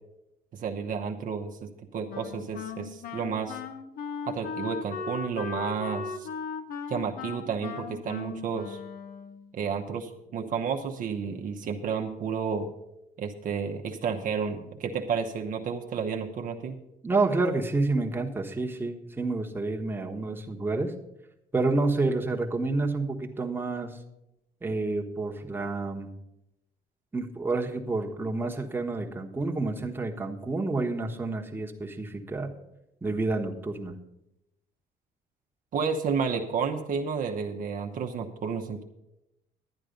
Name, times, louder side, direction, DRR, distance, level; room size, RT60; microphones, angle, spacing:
voice 1, 0.5-3.6 4.3-6.3 6.9-8.8 9.5-12.7 13.2-16.8 35.7-38.8, right 6 dB, 55° right, 2 dB, 0.9 m, -31 dB
Wind instrument woodwind instrument, 2.1-9.5, left 5 dB, 65° left, 1.0 m, -37 dB
voice 2, 17.0-20.9 21.5-23.9 24.6-26.1 27.1-32.5 33.0-34.0, right 3 dB, 10° right, 1 dB, 1.2 m, -29 dB
11.5 x 9.0 x 5.2 m, 0.89 s
cardioid pair, 110°, 17 cm